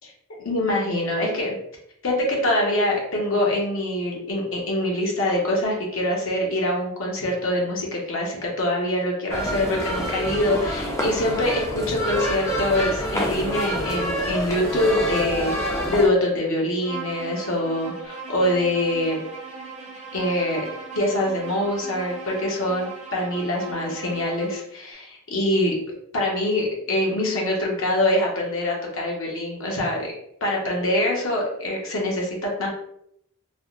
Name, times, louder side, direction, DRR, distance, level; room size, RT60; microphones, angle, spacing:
voice 1, 0.4-1.6 2.0-15.5 15.9-19.2 20.1-20.7 21.0-25.8 26.1-30.1 30.4-32.7, left 1 dB, 65° left, -2 dB, 0.8 m, -24 dB
sound 1, 9.3-16.1, equal, 15° left, 0.4 m, -27 dB
Bowed string instrument, 16.8-24.7, right 4 dB, 30° right, 0.6 m, -38 dB
3.3 x 2.0 x 2.4 m, 0.74 s
head